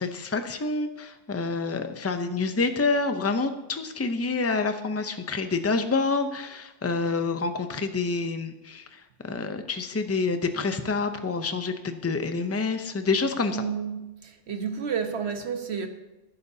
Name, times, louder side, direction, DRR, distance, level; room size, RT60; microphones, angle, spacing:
voice 1, 0.0-13.6, left 4 dB, 15° left, 0.6 m, -27 dB
voice 2, 13.5-15.9, right 6 dB, 60° right, 1.4 m, -31 dB
19.0 x 11.0 x 2.8 m
omnidirectional pair, 1.2 m